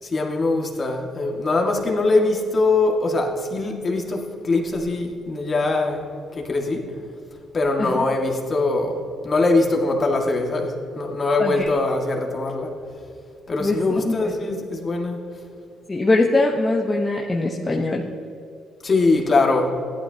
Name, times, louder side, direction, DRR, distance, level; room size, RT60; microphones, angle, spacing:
voice 1, 0.0-6.0 6.3-6.9 7.5-9.0 9.2-12.7 13.5-15.2 18.8-19.7, left 3 dB, 40° left, 1 dB, 1.9 m, -22 dB
voice 2, 15.9-18.0, left 2 dB, 25° left, -1 dB, 1.0 m, -21 dB
15.5 x 11.5 x 2.8 m, 2.5 s
cardioid pair, 90°, 0 cm